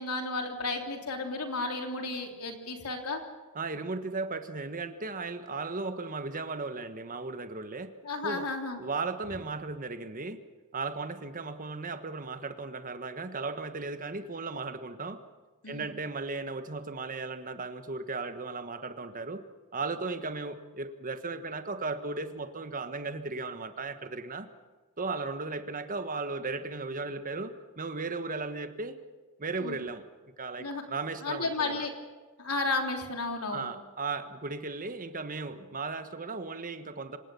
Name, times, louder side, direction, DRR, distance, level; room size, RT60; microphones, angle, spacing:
voice 1, 0.0-3.2 8.0-8.8 15.6-15.9 29.6-29.8 30.6-30.8 31.2-31.9 32.4-33.7, left 3 dB, 85° left, 4 dB, 3.4 m, -33 dB
voice 2, 3.5-7.9 8.2-8.5 8.8-10.4 10.7-15.2 15.7-19.4 19.7-24.5 25.0-29.0 29.4-30.0 30.4-31.9 33.5-37.2, right 3 dB, 40° right, 9 dB, 1.4 m, -36 dB
26.5 x 17.5 x 7.0 m, 1.3 s
head